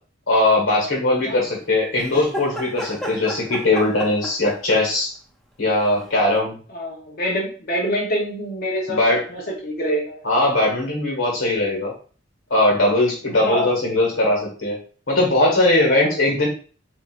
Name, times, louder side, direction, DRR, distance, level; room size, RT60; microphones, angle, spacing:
voice 1, 0.3-5.1 5.6-6.6 8.9-9.2 10.2-11.9 12.5-14.8 15.1-16.5, left 2 dB, 75° left, -1 dB, 1.3 m, -20 dB
sound 1, 2.0-5.0 6.3-6.4, equal, ahead, 0.5 m, -33 dB
voice 2, 6.7-9.0 9.3-10.2 13.3-13.7 15.9-16.1, equal, 50° left, -3 dB, 0.9 m, -25 dB
4.2 x 2.7 x 2.5 m, 0.41 s
head